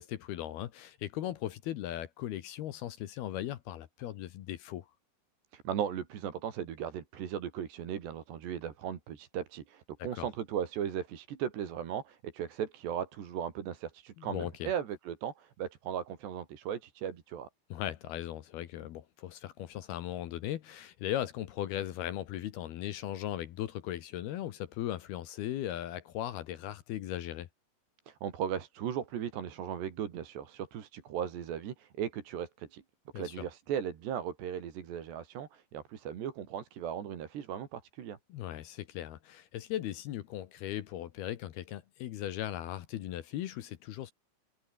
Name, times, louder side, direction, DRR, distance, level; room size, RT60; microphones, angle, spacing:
voice 1, 0.0-4.9 10.0-10.3 14.2-14.7 17.7-27.5 33.1-33.5 38.3-44.1, left 12 dB, 70° left, 2.8 m, -38 dB
voice 2, 5.5-17.5 28.1-32.8 33.2-38.2, right 9 dB, 65° right, 4.7 m, -37 dB
omnidirectional pair, 5.4 m